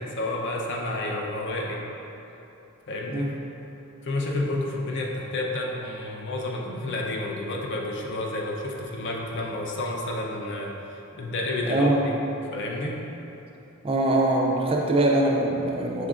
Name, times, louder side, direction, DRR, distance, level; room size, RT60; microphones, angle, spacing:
voice 1, 0.0-1.8 2.9-3.3 4.0-12.2 12.5-13.0, left 2 dB, 55° left, -1 dB, 0.5 m, -30 dB
voice 2, 11.6-12.1 13.8-16.1, right 1 dB, 25° right, -1 dB, 0.3 m, -23 dB
6.3 x 3.5 x 2.4 m, 3.0 s
head